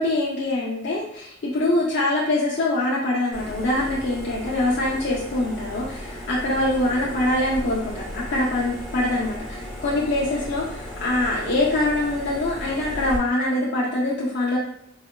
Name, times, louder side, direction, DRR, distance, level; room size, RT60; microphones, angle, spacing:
voice 1, 0.0-14.6, left 1 dB, 55° left, -5 dB, 0.4 m, -24 dB
sound 1, 3.3-13.2, equal, ahead, 0.7 m, -35 dB
4.1 x 2.1 x 2.2 m, 0.75 s
head